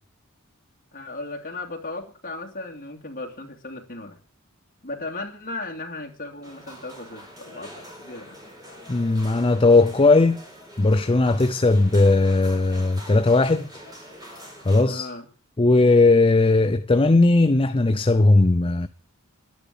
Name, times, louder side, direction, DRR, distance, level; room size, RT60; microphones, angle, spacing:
voice 1, 0.9-4.2 4.8-8.4 14.9-15.3, left 2 dB, 40° left, 2.6 m, -36 dB
sound 1, 6.4-14.8, equal, 20° right, 5.0 m, -44 dB
voice 2, 8.9-10.4 10.8-13.7 14.6-15.1 15.6-18.9, left 2 dB, 25° left, 0.6 m, -18 dB
11.5 x 10.5 x 8.3 m
head